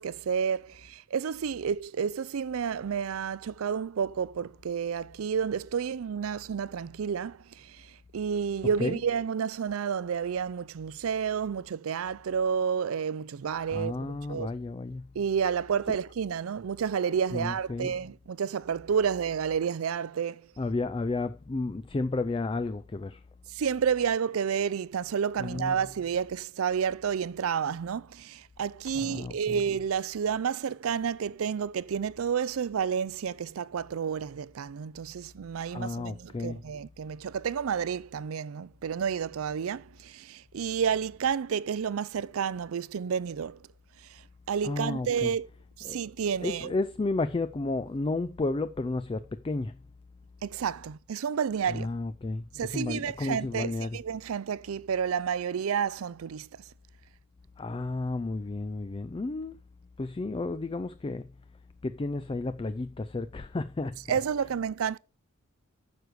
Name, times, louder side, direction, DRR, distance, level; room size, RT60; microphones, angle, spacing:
voice 1, 0.0-14.5 15.1-20.4 23.5-43.6 44.0-44.2 44.5-45.5 45.8-46.7 50.4-51.9 52.5-56.5 64.1-65.0, right 7 dB, 85° right, 0.4 m, -30 dB
voice 2, 13.7-15.1 17.3-18.0 20.6-23.2 25.4-25.8 28.9-29.6 35.6-36.6 44.6-45.3 45.8-46.0 46.4-49.8 51.7-54.0 57.6-59.6 60.0-61.3 61.8-64.2, left 3 dB, 25° left, 0.4 m, -32 dB
9.4 x 6.4 x 4.8 m
head